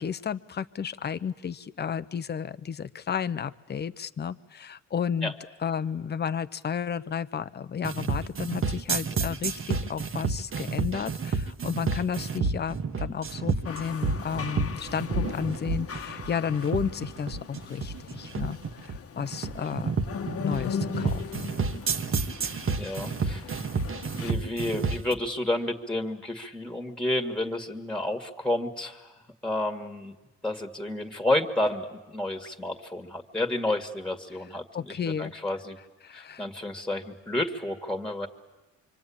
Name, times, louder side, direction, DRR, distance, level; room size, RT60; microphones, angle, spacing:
voice 1, 0.0-5.3 5.6-19.9 20.4-21.5 34.7-35.3 36.0-36.4, left 7 dB, 35° left, 12 dB, 0.8 m, -32 dB
sound 1, 7.8-25.1, right 4 dB, 45° right, 1.5 m, -30 dB
sound 2, 13.7-24.3, left 7 dB, 50° left, 1.3 m, -39 dB
voice 2, 22.4-23.5 24.1-29.1 29.4-30.1 30.4-35.8 36.1-38.3, left 1 dB, 5° left, 6 dB, 2.1 m, -30 dB
26.0 x 25.0 x 8.8 m, 1.1 s
cardioid pair, 90°, 30 cm